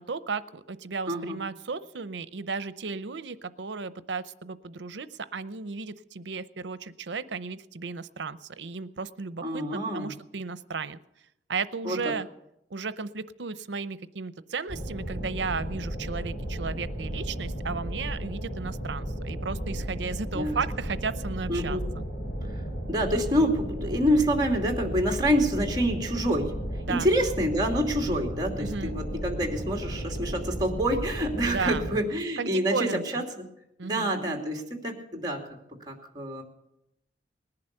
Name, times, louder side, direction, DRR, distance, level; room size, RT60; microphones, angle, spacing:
voice 1, 0.0-11.0 11.5-12.3 12.7-22.0 26.8-27.1 28.6-28.9 31.5-31.9 32.4-33.2 33.8-34.1, right 4 dB, 85° right, 15 dB, 0.7 m, -34 dB
voice 2, 1.1-1.4 9.4-10.1 11.8-12.0 20.3-20.6 21.5-21.8 22.9-26.5 26.9-33.4 33.8-35.4 35.9-36.4, equal, 25° right, 2 dB, 2.6 m, -27 dB
sound 1, 14.7-32.0, equal, 80° left, 4.2 m, -34 dB
19.5 x 11.0 x 6.7 m, 0.81 s
head